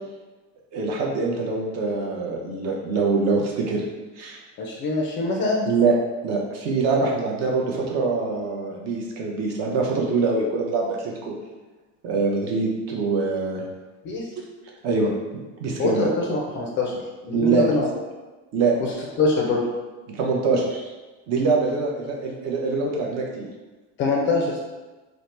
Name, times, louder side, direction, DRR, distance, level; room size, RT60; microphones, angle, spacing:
voice 1, 0.7-3.8 4.2-4.4 5.7-5.9 6.2-11.3 12.0-13.6 14.8-15.1 15.6-16.1 17.3-17.6 18.5-18.7 20.1-20.9 21.3-23.5, right 4 dB, 45° right, -1 dB, 0.6 m, -24 dB
voice 2, 4.6-5.7 14.0-14.2 15.8-16.9 17.2-17.9 19.2-19.6 24.0-24.6, left 3 dB, 35° left, -1 dB, 0.4 m, -23 dB
2.8 x 2.0 x 3.2 m, 1.2 s
supercardioid pair, 135°, 37 cm